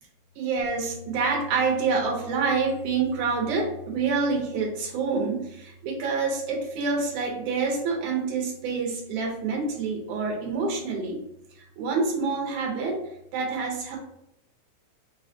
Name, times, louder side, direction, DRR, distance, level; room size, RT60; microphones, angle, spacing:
voice 1, 0.4-11.2 11.5-13.0 13.3-14.0, right 4 dB, 70° right, 0 dB, 2.4 m, -27 dB
5.9 x 2.3 x 3.8 m, 0.79 s
omnidirectional pair, 3.8 m